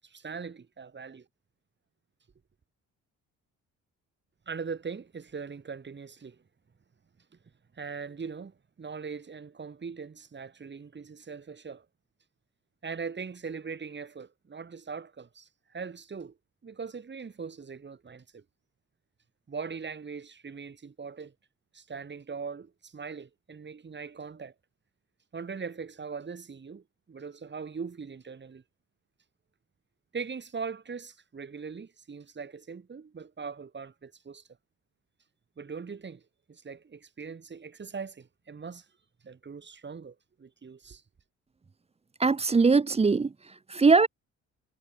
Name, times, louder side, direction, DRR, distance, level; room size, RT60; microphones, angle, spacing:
voice 1, 0.0-1.2 4.5-6.4 7.7-11.8 12.8-16.3 16.6-18.4 19.5-21.3 21.7-24.5 25.3-28.6 30.1-34.4 35.6-36.2 36.5-38.8 39.2-41.0, right 5 dB, 35° right, 6.6 m, -40 dB
voice 2, 42.2-44.1, right 4 dB, 20° right, 0.8 m, -22 dB
cardioid pair, 90°, 30 cm